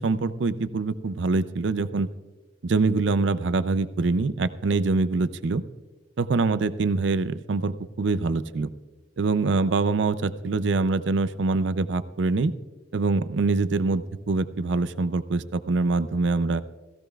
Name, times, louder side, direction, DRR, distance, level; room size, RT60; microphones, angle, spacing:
voice 1, 0.0-2.1 2.6-5.6 6.2-8.7 9.2-12.5 12.9-16.6, right 3 dB, 70° right, 14 dB, 0.5 m, -24 dB
16.0 x 15.5 x 2.4 m, 1.2 s
head